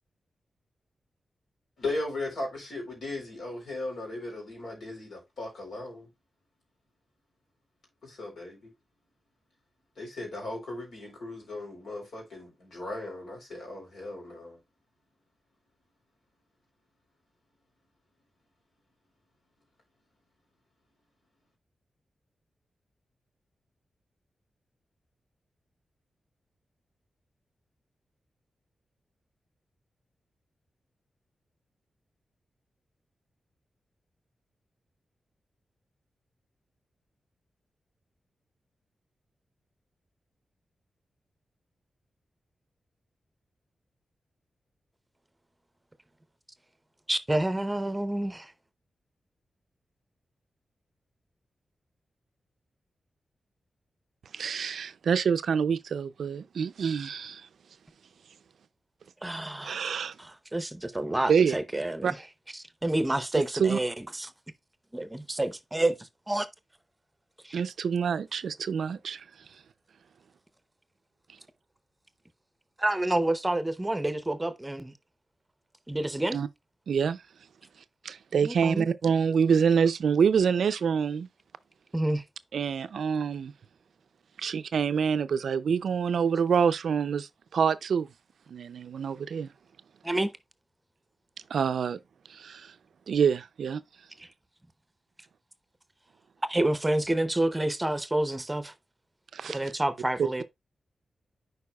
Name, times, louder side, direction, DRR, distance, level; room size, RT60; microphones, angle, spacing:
voice 1, 1.8-6.1 8.0-8.7 10.0-14.6, left 2 dB, 75° left, 3.5 m, -37 dB
voice 2, 47.1-48.5 59.2-59.8 60.2-62.2 62.8-64.3 64.9-66.5 67.4-67.6 72.8-74.9 75.9-76.4 78.4-78.9 81.9-82.2 90.0-90.3 94.2-94.3 96.5-98.7 99.5-100.4, right 1 dB, 20° right, 0.7 m, -28 dB
voice 3, 54.3-57.5 59.6-60.2 61.3-61.5 62.0-62.1 63.3-63.8 67.5-69.3 76.3-76.5 76.9-77.2 78.0-81.3 82.5-83.5 84.4-88.1 88.5-89.5 91.5-92.0 92.3-92.7 93.1-93.8 99.3-99.6, right 6 dB, 80° right, 0.4 m, -26 dB
9.5 x 4.6 x 2.3 m
cardioid pair, 50°, 0 cm